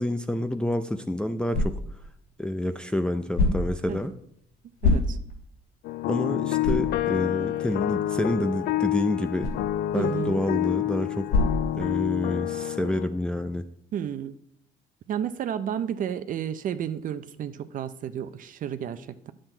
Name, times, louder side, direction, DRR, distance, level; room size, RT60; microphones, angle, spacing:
voice 1, 0.0-1.8 2.4-4.1 6.1-9.5 9.9-11.4 11.7-13.6, left 1 dB, 5° left, 6 dB, 0.5 m, -28 dB
sound 1, 0.7-12.4, left 2 dB, 85° left, 3.5 m, -31 dB
voice 2, 4.8-5.2 9.9-10.4 13.9-14.4 15.1-19.3, right 9 dB, 50° right, 12 dB, 0.6 m, -31 dB
sound 2, 5.8-13.1, left 13 dB, 70° left, 0.5 m, -28 dB
10.0 x 7.6 x 4.4 m, 0.70 s
cardioid pair, 110°, 17 cm